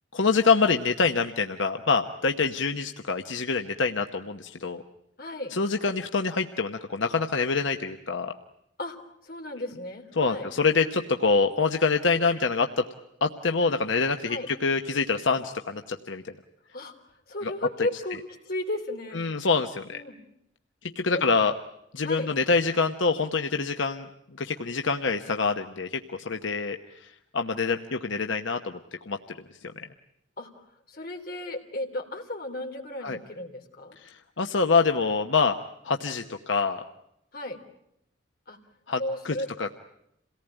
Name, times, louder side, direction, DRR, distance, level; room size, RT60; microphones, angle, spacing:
voice 1, 0.1-4.8 5.5-8.3 10.1-12.9 13.2-16.3 17.4-17.5 19.1-20.0 20.8-21.5 21.9-24.1 24.3-29.9 33.0-33.2 34.0-35.6 35.8-36.8 38.9-39.7, left 4 dB, 80° left, 6 dB, 1.0 m, -26 dB
voice 2, 5.2-5.5 8.8-9.0 9.2-10.5 14.3-14.5 16.7-16.9 17.3-18.2 18.5-19.2 19.9-20.2 21.1-21.2 22.0-22.3 30.4-30.5 30.9-34.0 37.3-37.6 38.5-38.6 39.0-39.7, left 1 dB, 50° left, 2 dB, 3.3 m, -34 dB
27.5 x 18.0 x 9.0 m, 0.81 s
head